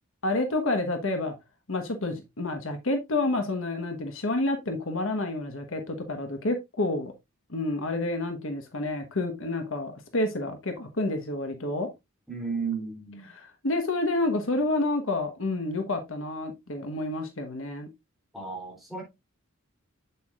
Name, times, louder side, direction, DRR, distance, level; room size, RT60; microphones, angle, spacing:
voice 1, 0.2-1.3 1.7-7.1 7.5-11.9 13.3-17.9, left 2 dB, 65° left, 1.3 m, -29 dB
voice 2, 12.3-13.3 18.3-19.0, right 5 dB, ahead, 3.3 m, -34 dB
8.0 x 6.9 x 2.5 m
head